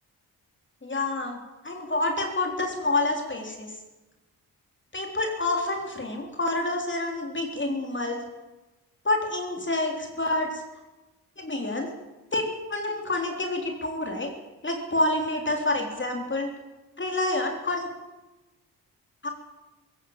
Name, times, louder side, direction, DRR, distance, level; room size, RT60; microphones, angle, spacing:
voice 1, 0.8-1.4 1.6-3.7 4.9-8.2 9.1-10.6 11.4-11.9 12.3-12.4 12.7-14.3 14.6-16.5 17.0-17.9 19.2-19.3, left 2 dB, 30° left, 3 dB, 3.7 m, -28 dB
20.0 x 17.5 x 8.9 m, 1.1 s
wide cardioid pair, 100°, 39 cm